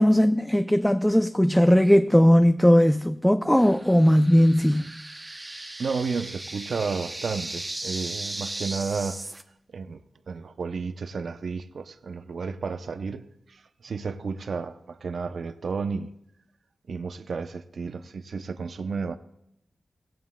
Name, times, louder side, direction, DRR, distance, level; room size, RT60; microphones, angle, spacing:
voice 1, 0.0-4.9, equal, 5° left, 0.4 m, -18 dB
sound 1, 3.6-9.4, right 2 dB, 25° right, 0.7 m, -37 dB
voice 2, 5.8-9.2 9.7-10.0 10.3-16.1 16.9-19.2, right 5 dB, 75° right, 0.6 m, -32 dB
17.0 x 16.5 x 2.2 m
wide cardioid pair, 85°, 0 cm